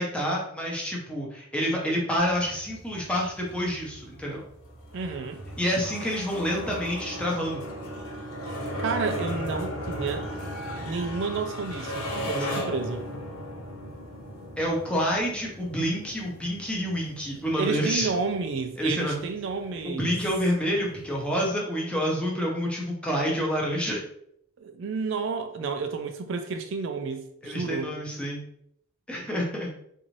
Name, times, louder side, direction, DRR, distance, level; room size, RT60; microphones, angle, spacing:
voice 1, 0.0-4.4 5.6-7.6 12.5-12.7 14.6-18.1 18.8-19.2 19.8-24.0 27.4-28.4 29.1-29.7, equal, 5° left, 0.7 m, -28 dB
sound 1, 2.2-21.5, equal, 80° left, 1.1 m, -37 dB
voice 2, 4.9-5.4 8.8-10.3 10.8-13.1 17.5-20.2 24.6-27.9, right 4 dB, 55° right, 0.3 m, -31 dB
3.9 x 2.6 x 3.1 m
head